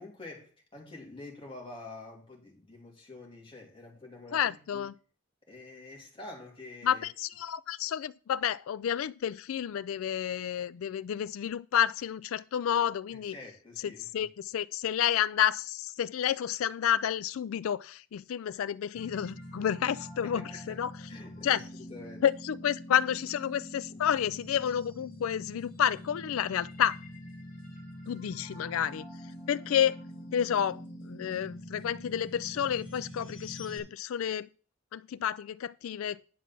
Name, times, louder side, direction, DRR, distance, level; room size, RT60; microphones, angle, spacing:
voice 1, 0.0-4.9 5.5-7.1 13.1-14.1 20.2-20.8 21.1-22.2, left 2 dB, 25° left, 2.8 m, -47 dB
voice 2, 4.3-4.9 6.8-13.3 14.1-20.4 20.7-20.9 21.4-21.6 22.2-26.9 28.1-29.0 29.5-30.0 30.3-30.8 31.1-34.5 34.9-36.2, left 9 dB, 90° left, 0.3 m, -30 dB
sound 1, 18.9-33.8, left 1 dB, 40° left, 3.2 m, -45 dB
10.0 x 5.9 x 6.0 m
head